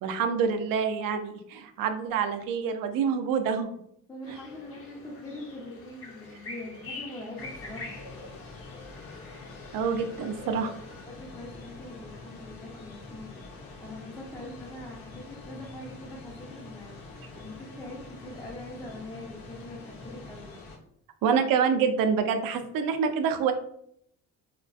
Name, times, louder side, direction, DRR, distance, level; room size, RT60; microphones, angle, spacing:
voice 1, 0.0-3.8 4.3-4.4 9.7-10.7 21.2-23.5, right 6 dB, 70° right, 7 dB, 0.5 m, -27 dB
voice 2, 4.1-8.0 11.0-20.5, left 1 dB, 10° left, -3 dB, 0.5 m, -43 dB
sound 1, 4.2-11.0, left 3 dB, 40° left, 0.7 m, -45 dB
sound 2, 7.4-20.8, left 3 dB, 80° left, 0.6 m, -46 dB
2.4 x 2.2 x 2.3 m, 0.70 s
supercardioid pair, 75°, 35 cm